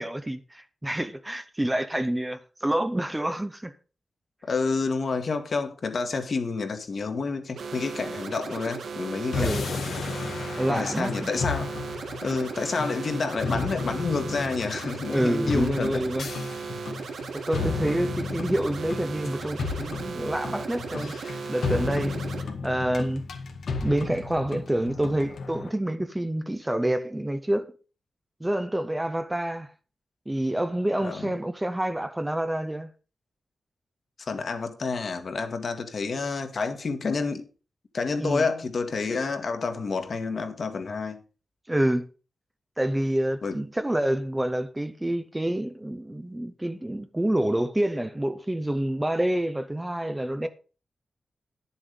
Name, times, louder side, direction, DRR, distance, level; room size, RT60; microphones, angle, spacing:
voice 1, 0.0-3.7 9.3-9.7 10.6-11.1 15.1-16.3 17.3-22.2 22.6-23.2 23.7-27.7 28.4-29.7 30.3-32.9 38.2-38.4 41.7-42.0 42.8-50.5, right 1 dB, 10° right, 0.7 m, -27 dB
voice 2, 4.5-9.8 10.7-11.7 12.2-16.1 31.0-31.3 34.3-37.5 37.9-41.2 43.4-43.6, left 4 dB, 50° left, 1.6 m, -29 dB
sound 1, 7.5-22.4, right 5 dB, 80° right, 1.6 m, -37 dB
sound 2, 9.3-25.7, left 4 dB, 75° left, 1.9 m, -33 dB
10.5 x 7.3 x 5.1 m
wide cardioid pair, 145°, 0 cm